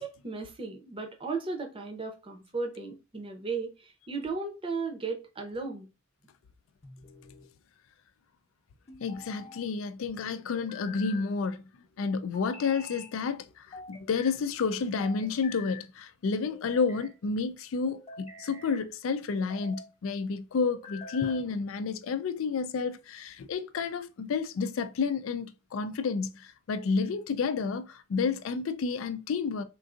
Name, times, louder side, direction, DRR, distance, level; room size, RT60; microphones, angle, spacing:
voice 1, 0.0-5.9, right 4 dB, 25° right, 0.6 m, -35 dB
sound 1, 6.8-7.5 8.9-9.6 10.5-11.3 12.3-13.1 13.7-14.4 15.0-15.9 16.5-17.1 17.9-18.8 19.4-19.9 20.6-21.5, left 3 dB, 35° left, 0.7 m, -46 dB
voice 2, 9.0-11.6 12.0-29.6, left 5 dB, 90° left, 0.4 m, -30 dB
3.7 x 2.5 x 2.4 m
head